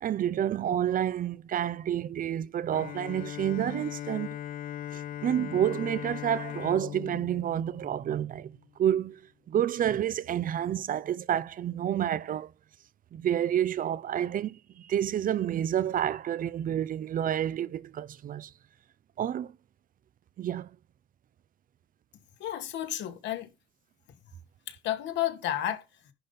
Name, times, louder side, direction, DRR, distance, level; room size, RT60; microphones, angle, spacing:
voice 1, 0.0-4.4 4.9-9.2 9.5-12.5 13.1-18.5 19.2-19.5 20.4-20.7, right 10 dB, 45° right, 0.6 m, -29 dB
Bowed string instrument, 2.7-8.6, left 11 dB, 45° left, 0.5 m, -39 dB
voice 2, 22.4-23.5 24.7-25.8, left 12 dB, 70° left, 2.2 m, -31 dB
11.0 x 4.0 x 5.6 m
supercardioid pair, 90°, 20 cm